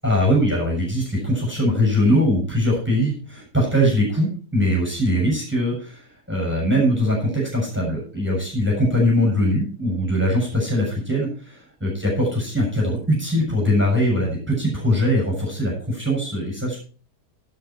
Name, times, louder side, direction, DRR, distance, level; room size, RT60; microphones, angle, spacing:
voice 1, 0.0-16.8, equal, 5° right, -3 dB, 6.9 m, -21 dB
12.0 x 11.0 x 4.6 m, 0.39 s
omnidirectional pair, 1.8 m